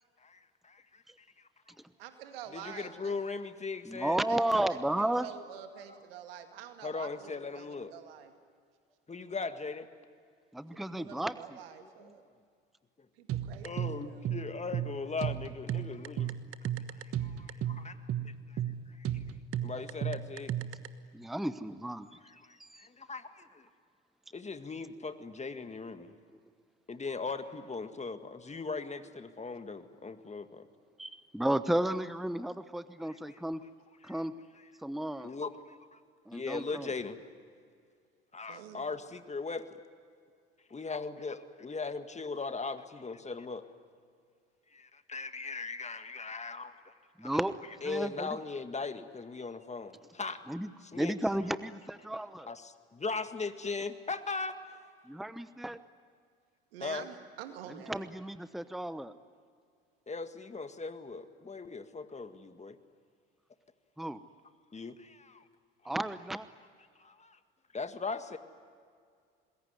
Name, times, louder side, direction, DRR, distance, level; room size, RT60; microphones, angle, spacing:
voice 1, 2.0-3.1 4.3-8.3 10.7-12.2 13.2-14.3 19.7-19.9 38.5-38.9 56.7-58.0, right 9 dB, 80° right, 7 dB, 2.2 m, -47 dB
voice 2, 2.5-4.2 6.8-7.9 9.1-9.9 12.0-12.1 13.6-16.4 16.6-16.7 17.0-18.6 18.9-19.2 19.6-20.5 22.4-23.7 24.3-26.2 26.9-30.7 33.0-33.4 34.0-34.2 35.2-35.6 35.9-36.0 36.3-37.2 38.3-39.7 40.7-43.7 44.7-46.9 47.2-47.3 47.8-50.4 50.8-51.1 52.5-54.6 56.8-57.0 60.1-62.8 64.7-65.4 67.0-67.4 67.7-68.4, left 4 dB, 25° left, 9 dB, 1.9 m, -39 dB
voice 3, 3.9-5.3 10.5-11.4 21.1-22.1 22.6-22.9 31.0-33.6 34.0-34.3 34.8-35.3 36.3-36.9 47.2-47.5 47.8-48.4 50.5-52.5 55.0-55.8 57.9-59.1 64.0-64.2 65.8-66.5, right 1 dB, ahead, 13 dB, 1.0 m, -33 dB
sound 1, 13.3-20.9, right 10 dB, 50° right, 1.4 m, -34 dB
26.5 x 21.0 x 9.6 m, 2.2 s
hypercardioid pair, 60°, 29 cm